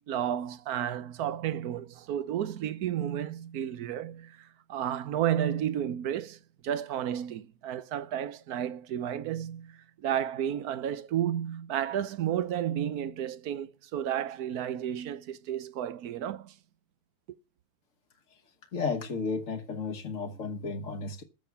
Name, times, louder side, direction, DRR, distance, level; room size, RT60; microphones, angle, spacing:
voice 1, 0.0-16.5, right 10 dB, 70° right, 0.9 m, -32 dB
voice 2, 18.7-21.2, left 4 dB, 45° left, 1.3 m, -33 dB
14.5 x 7.1 x 5.8 m
omnidirectional pair, 2.4 m